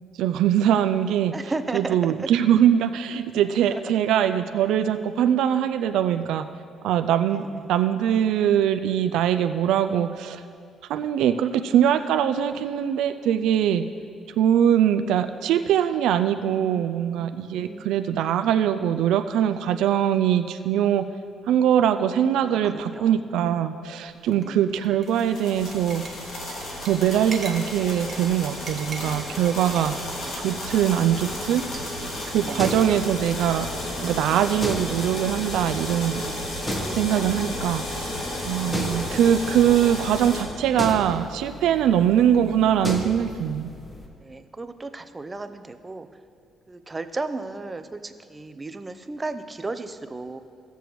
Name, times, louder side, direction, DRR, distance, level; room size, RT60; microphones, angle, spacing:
voice 1, 0.2-1.3 1.7-6.4 6.8-10.4 10.9-13.8 14.4-21.1 21.5-26.0 26.8-29.9 30.3-31.6 32.3-33.7 34.0-36.2 36.9-38.1 38.4-43.7, right 10 dB, 85° right, 9 dB, 0.3 m, -22 dB
voice 2, 1.3-2.3 3.7-3.8 7.3-7.7 16.4-18.0 22.5-23.2 24.1-24.6 29.3-29.6 30.0-31.2 32.3-32.9 36.6-38.1 38.5-39.1 44.2-46.1 46.7-50.4, right 3 dB, 25° right, 10 dB, 0.6 m, -36 dB
sound 1, 24.1-32.7, right 4 dB, 40° right, 1.3 m, -44 dB
sound 2, 25.1-40.4, left 1 dB, 80° left, 2.2 m, -33 dB
sound 3, 31.5-44.1, left 1 dB, 15° left, 1.3 m, -36 dB
17.0 x 6.8 x 3.1 m, 2.3 s
cardioid pair, 90°, 0 cm